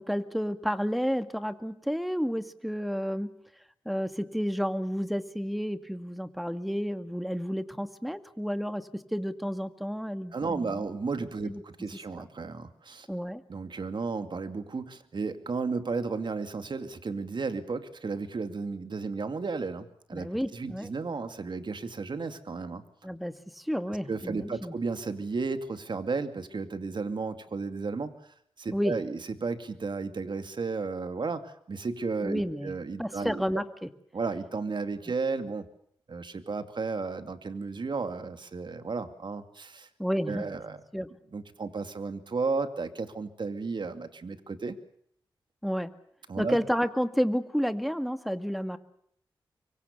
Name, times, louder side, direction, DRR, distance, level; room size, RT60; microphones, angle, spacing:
voice 1, 0.0-3.3 3.9-10.9 11.4-11.6 12.2-12.3 13.1-13.4 20.1-20.9 23.0-24.8 28.7-29.0 32.2-32.7 33.0-33.9 40.0-40.5 40.9-41.1 45.6-45.9 46.4-48.8, equal, ahead, 10 dB, 2.0 m, -31 dB
voice 2, 10.3-13.1 13.5-22.8 23.9-28.1 28.6-33.6 34.1-35.7 36.1-39.9 40.3-40.8 41.3-44.8 46.3-46.6, right 4 dB, 60° right, 9 dB, 2.4 m, -33 dB
25.0 x 24.0 x 6.9 m, 0.68 s
cardioid pair, 45°, 9 cm